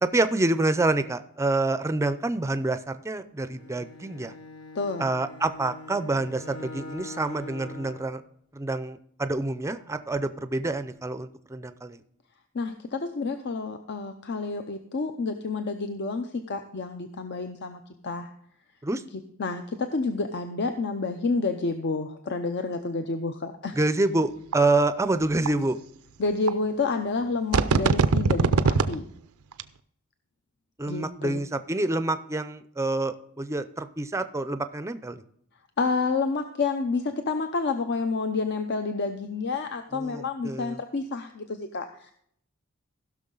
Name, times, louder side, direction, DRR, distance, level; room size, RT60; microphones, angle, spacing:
voice 1, 0.0-4.3 5.0-8.2 8.5-12.0 18.8-19.0 23.7-25.8 30.8-35.2 39.9-40.8, right 2 dB, 15° right, 11 dB, 0.5 m, -27 dB
Bowed string instrument, 3.4-8.2, left 2 dB, 80° left, 1.0 m, -43 dB
voice 2, 4.8-5.1 12.5-18.3 19.4-23.8 26.2-29.0 30.9-31.4 35.8-42.1, left 4 dB, 50° left, 7 dB, 0.6 m, -29 dB
sound 1, 24.5-24.6 25.5-25.6 26.5-26.6 27.5-28.9 29.5-29.6, right 4 dB, 85° right, 0.5 m, -20 dB
16.0 x 6.2 x 3.8 m, 0.68 s
head